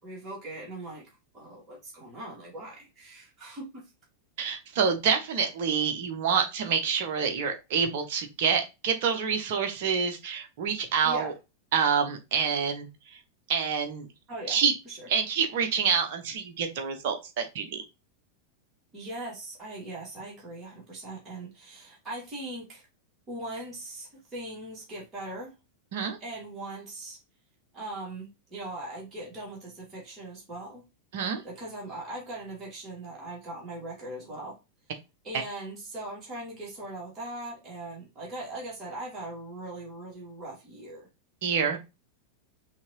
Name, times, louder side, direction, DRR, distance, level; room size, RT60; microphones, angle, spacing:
voice 1, 0.0-3.8 11.0-11.3 14.3-15.1 18.9-22.9 23.3-25.5 26.2-27.2 27.7-30.8 31.4-34.6 35.2-41.1, right 2 dB, 20° right, 2.4 m, -40 dB
voice 2, 4.4-11.3 11.7-12.9 13.5-14.1 14.5-14.7 15.1-17.8 25.9-26.2 31.1-31.4 41.4-41.8, right 6 dB, 50° right, 0.9 m, -27 dB
5.7 x 2.9 x 2.9 m
figure-of-eight pair, 90°, 0 cm